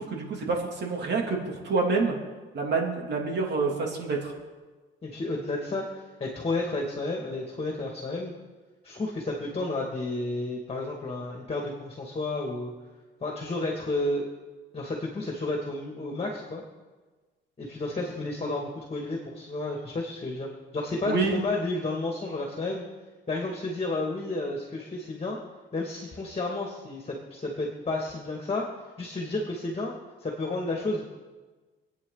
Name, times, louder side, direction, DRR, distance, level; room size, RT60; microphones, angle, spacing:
voice 1, 0.0-2.1 2.5-4.3 21.0-21.4, right 4 dB, 60° right, 0 dB, 3.2 m, -27 dB
voice 2, 5.0-8.3 8.8-12.7 13.2-14.2 14.7-16.6 17.6-20.5 20.7-22.8 23.3-25.4 25.7-28.6 29.0-29.9 30.2-31.0, left 2 dB, 30° left, 0 dB, 2.5 m, -31 dB
27.5 x 9.2 x 4.2 m, 1.3 s
cardioid pair, 90°, 20 cm